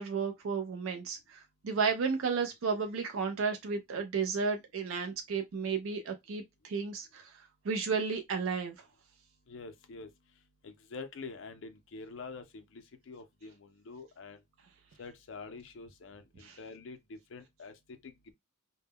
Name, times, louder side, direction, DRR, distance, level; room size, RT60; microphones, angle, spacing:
voice 1, 0.0-8.7 16.4-16.6, right 5 dB, 70° right, 0.4 m, -33 dB
voice 2, 9.5-10.1 10.6-14.4 15.0-18.3, left 4 dB, 65° left, 0.5 m, -46 dB
2.1 x 2.1 x 3.4 m
head